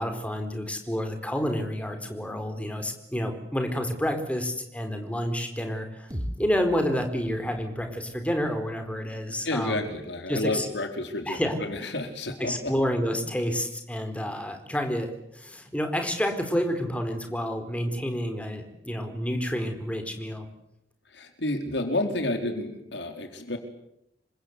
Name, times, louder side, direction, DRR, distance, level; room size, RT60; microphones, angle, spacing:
voice 1, 0.0-6.1 6.4-9.9 10.3-10.7 11.3-11.6 12.4-15.1 15.3-20.5, equal, 10° left, 6 dB, 4.4 m, -29 dB
sound 1, 6.1-10.1, equal, 20° right, 3.5 m, -41 dB
voice 2, 9.4-12.7 21.1-23.6, left 2 dB, 80° left, 6 dB, 4.5 m, -30 dB
28.5 x 25.0 x 8.3 m, 0.81 s
head